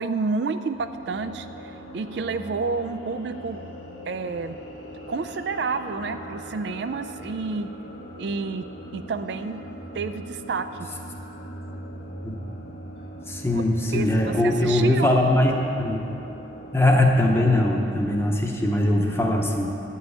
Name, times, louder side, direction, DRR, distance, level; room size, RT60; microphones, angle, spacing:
voice 1, 0.0-3.6 4.1-4.6 5.1-7.7 8.2-8.7 8.9-9.6 9.9-10.7 13.5-13.6 13.9-15.1, right 4 dB, 65° right, 9 dB, 0.4 m, -29 dB
sound 1, 0.7-18.0, equal, 60° left, 1.6 m, -40 dB
voice 2, 13.3-15.5 15.8-16.1 16.7-19.7, left 1 dB, 15° left, 1 dB, 0.8 m, -21 dB
11.0 x 5.5 x 8.1 m, 2.9 s
head